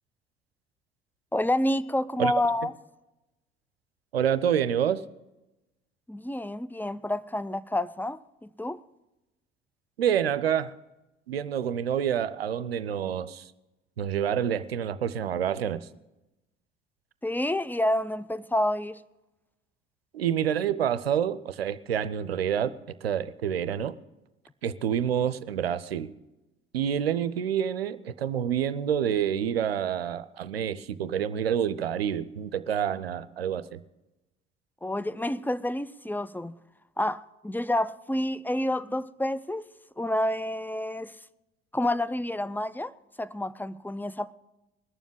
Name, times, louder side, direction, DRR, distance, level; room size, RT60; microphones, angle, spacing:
voice 1, 1.3-2.7 6.1-8.8 17.2-19.0 34.8-36.5 37.0-39.7 40.0-41.1 41.7-42.9 43.2-44.3, left 1 dB, 5° left, 0.5 m, -29 dB
voice 2, 4.1-5.0 10.0-10.7 11.3-13.5 14.0-15.9 20.1-22.7 23.0-24.0 24.6-26.1 26.7-33.8, right 9 dB, 90° right, 0.5 m, -28 dB
20.0 x 7.1 x 9.1 m
figure-of-eight pair, 55°, 29 cm